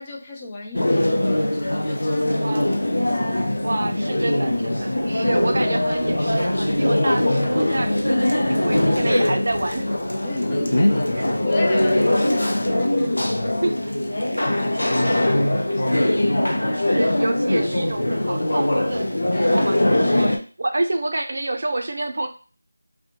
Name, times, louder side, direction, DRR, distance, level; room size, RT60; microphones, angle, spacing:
voice 1, 0.0-2.5 2.9-3.6 10.2-13.2 14.0-16.3 19.3-19.8 20.1-20.2, left 2 dB, 20° left, -1 dB, 0.4 m, -35 dB
sound 1, 0.7-20.4, left 1 dB, 75° left, 0.5 m, -21 dB
voice 2, 2.4-2.7 3.6-9.9 13.6-13.9 16.9-22.3, right 2 dB, 55° right, 5 dB, 0.4 m, -28 dB
2.7 x 2.1 x 2.8 m, 0.38 s
figure-of-eight pair, 170°, 0 cm